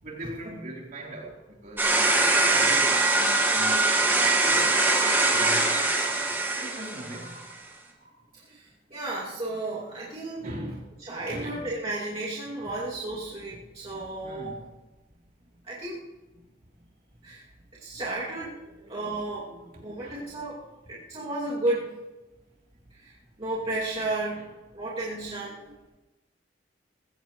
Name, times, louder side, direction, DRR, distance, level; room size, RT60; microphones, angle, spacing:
voice 1, 0.0-5.8 6.6-7.5 8.0-8.1 10.4-10.9 11.3-11.7 14.2-14.7 18.6-20.4 25.5-25.8, right 1 dB, 50° right, -3 dB, 3.8 m, -41 dB
sound 1, 1.8-7.3, right 2 dB, 10° right, 1.9 m, -22 dB
voice 2, 8.3-10.5 11.0-14.5 15.7-16.0 17.2-17.4 17.8-18.6 18.9-19.5 19.8-20.6 20.9-21.9 22.9-24.4 24.7-25.6, right 2 dB, 35° right, -8 dB, 2.6 m, -33 dB
21.5 x 16.0 x 3.1 m, 1.1 s
head